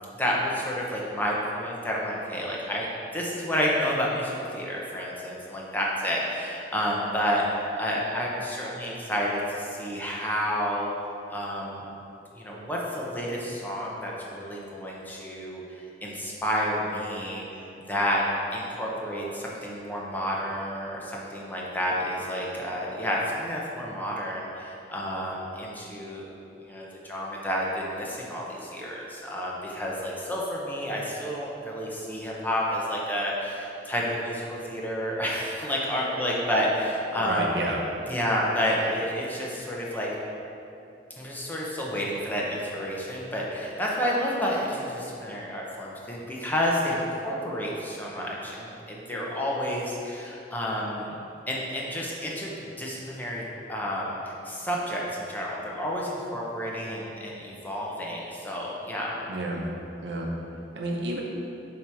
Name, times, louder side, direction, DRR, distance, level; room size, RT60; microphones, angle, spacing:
voice 1, 0.2-2.9 3.1-10.9 11.3-11.8 12.3-17.4 17.9-18.2 18.5-26.3 26.6-37.5 38.1-40.1 41.2-51.2 51.5-59.2, equal, 10° left, -4 dB, 0.7 m, -30 dB
voice 2, 37.1-37.8 59.3-59.6 60.0-60.3 60.7-61.2, right 1 dB, 80° right, -2 dB, 0.8 m, -30 dB
7.2 x 3.0 x 4.7 m, 2.8 s
head